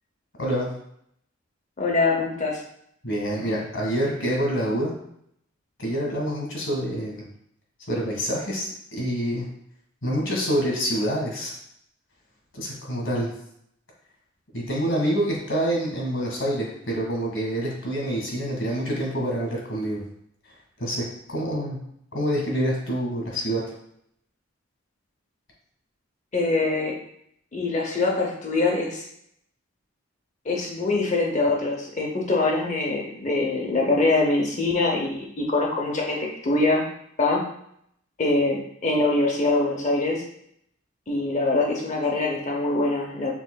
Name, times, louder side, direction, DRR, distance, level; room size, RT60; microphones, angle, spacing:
voice 1, 0.4-0.7 3.0-4.9 5.8-7.2 7.9-9.5 10.0-11.5 12.5-13.3 14.5-20.0 20.8-21.8 22.1-23.6, equal, 65° left, -2 dB, 1.7 m, -26 dB
voice 2, 1.8-2.6 26.3-26.9 27.5-29.0 30.5-36.9 37.2-37.4 38.2-40.2 41.1-43.3, left 2 dB, 35° left, -1 dB, 0.7 m, -23 dB
6.0 x 3.7 x 2.2 m, 0.71 s
head